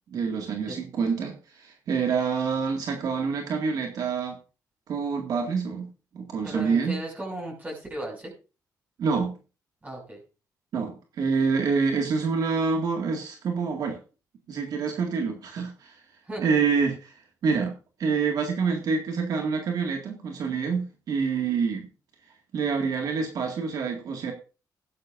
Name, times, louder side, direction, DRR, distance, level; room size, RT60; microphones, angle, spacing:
voice 1, 0.1-4.4 4.9-5.9 6.1-7.0 9.0-9.3 10.7-14.0 14.5-16.0 16.4-17.1 17.4-21.9 22.5-24.3, right 5 dB, 65° right, 2 dB, 2.0 m, -27 dB
voice 2, 6.4-8.3 9.8-10.2 16.2-16.5, right 1 dB, 20° right, -1 dB, 6.2 m, -36 dB
16.0 x 12.0 x 2.6 m, 0.33 s
cardioid pair, 115°, 7 cm